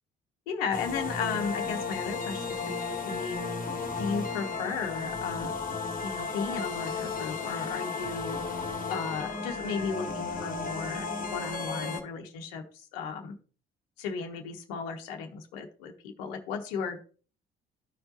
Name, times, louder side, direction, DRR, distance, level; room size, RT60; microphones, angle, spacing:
voice 1, 0.5-3.4 4.0-5.6 6.0-8.4 8.9-13.3 14.0-15.9 16.2-17.0, left 5 dB, 70° left, 4 dB, 1.0 m, -35 dB
sound 1, 0.7-12.0, left 4 dB, 30° left, 1.7 m, -34 dB
13.0 x 4.4 x 2.8 m, 0.39 s
figure-of-eight pair, 50°, 30 cm